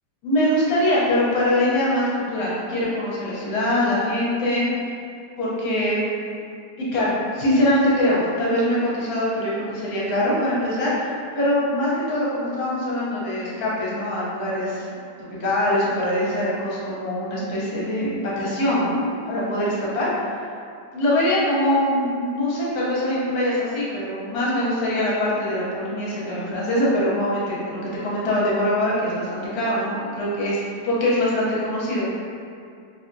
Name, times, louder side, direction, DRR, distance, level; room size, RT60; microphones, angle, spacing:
voice 1, 0.2-4.7 5.4-6.0 6.8-14.9 15.4-19.0 19.3-20.1 20.9-32.1, left 1 dB, 65° left, -6 dB, 1.2 m, -23 dB
3.4 x 2.8 x 2.5 m, 2.4 s
omnidirectional pair, 1.8 m